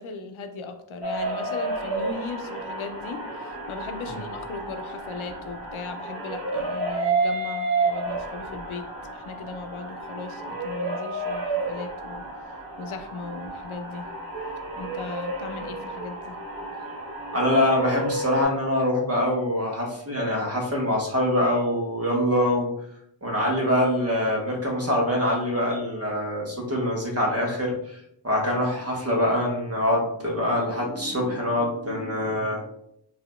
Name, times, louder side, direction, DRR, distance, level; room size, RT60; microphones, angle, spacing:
voice 1, 0.0-12.3 12.8-14.1 14.8-16.4, left 4 dB, 90° left, 7 dB, 0.6 m, -37 dB
sound 1, 1.0-18.4, right 3 dB, 70° right, 1.4 m, -31 dB
voice 2, 17.3-22.7 23.2-32.6, left 1 dB, 30° right, -1 dB, 1.2 m, -24 dB
4.9 x 2.8 x 2.2 m, 0.72 s
wide cardioid pair, 90°, 47 cm